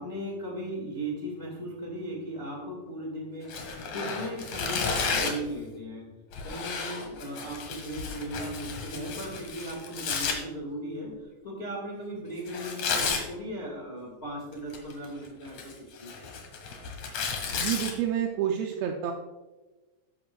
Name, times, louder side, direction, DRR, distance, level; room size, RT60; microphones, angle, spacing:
voice 1, 0.0-6.1 6.4-11.1 11.4-15.7 16.0-16.1, right 1 dB, 25° left, -2 dB, 1.7 m, -37 dB
Tearing, 3.5-5.5 6.3-10.4 12.5-13.2 14.5-15.1 15.4-17.9, left 5 dB, 70° left, 2.8 m, -32 dB
voice 2, 17.6-19.1, right 9 dB, 75° right, 2 dB, 1.6 m, -29 dB
13.5 x 11.0 x 2.3 m, 1.2 s
omnidirectional pair, 3.4 m